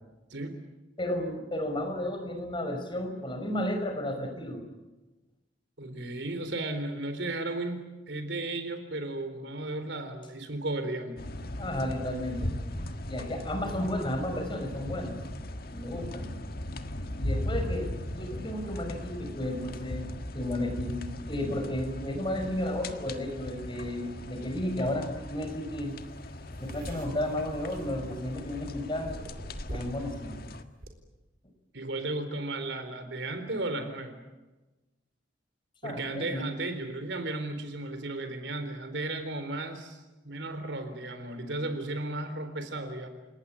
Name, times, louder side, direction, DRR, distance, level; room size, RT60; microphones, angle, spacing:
voice 1, 1.0-4.6 11.6-12.5 13.1-15.2 15.7-16.3 17.1-26.0 26.6-29.2 29.7-30.4 35.8-36.5, left 1 dB, 25° left, 5 dB, 5.3 m, -33 dB
voice 2, 5.8-11.2 31.7-34.2 35.8-40.0 40.2-43.1, right 2 dB, 70° right, 9 dB, 3.8 m, -34 dB
sound 1, 11.2-30.6, left 1 dB, 55° left, 1.7 m, -38 dB
sound 2, 25.9-26.0 26.2-28.6 29.0-30.1 30.4-30.9, equal, 50° right, 4.0 m, -42 dB
29.5 x 19.0 x 8.8 m, 1.1 s
head